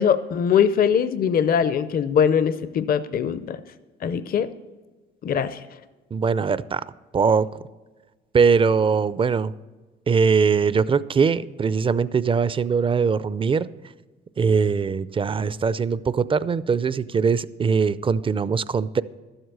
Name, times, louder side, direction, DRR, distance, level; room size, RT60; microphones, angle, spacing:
voice 1, 0.0-3.6 4.0-4.5 5.2-5.6, left 7 dB, 50° left, 13 dB, 0.6 m, -21 dB
voice 2, 6.1-6.8 7.1-7.5 8.3-9.5 10.1-13.7 14.4-19.0, right 5 dB, 25° right, 17 dB, 0.4 m, -21 dB
12.0 x 7.9 x 6.7 m, 1.3 s
cardioid pair, 90°, 20 cm